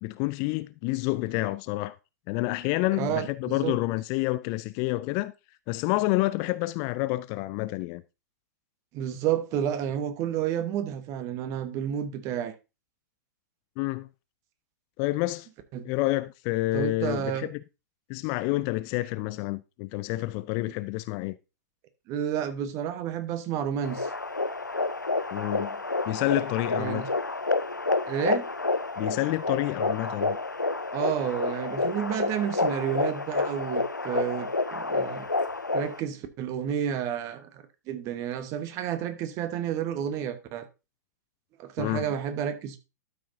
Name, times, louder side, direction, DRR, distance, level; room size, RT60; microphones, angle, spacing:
voice 1, 0.0-2.0 2.3-5.3 5.7-8.0 13.8-14.1 15.0-15.5 15.8-17.6 18.1-21.4 25.3-27.0 29.0-30.4 41.8-42.1, left 19 dB, 35° left, 0.4 m, -28 dB
voice 2, 3.0-3.8 8.9-12.5 15.7-15.9 16.7-17.5 20.6-20.7 22.1-24.1 26.8-27.1 28.1-28.5 30.9-35.3 35.7-40.7 41.6-42.8, right 9 dB, 35° right, 1.2 m, -31 dB
sound 1, 23.8-36.0, left 3 dB, 90° left, 0.5 m, -29 dB
12.5 x 6.1 x 2.7 m
figure-of-eight pair, 105°, 10 cm